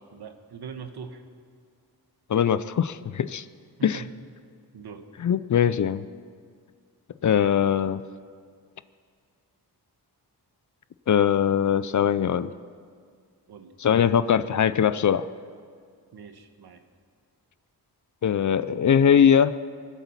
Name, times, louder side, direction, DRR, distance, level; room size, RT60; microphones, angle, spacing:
voice 1, 0.1-1.2 3.8-4.1 4.7-5.1 13.5-13.7 16.1-16.8, right 6 dB, 70° right, 6 dB, 1.4 m, -41 dB
voice 2, 2.3-3.4 3.8-4.0 5.2-6.0 7.2-8.0 11.1-12.5 13.8-15.3 18.2-19.5, left 8 dB, 50° left, 15 dB, 0.5 m, -21 dB
23.5 x 8.2 x 7.2 m, 2.1 s
wide cardioid pair, 115°, 40 cm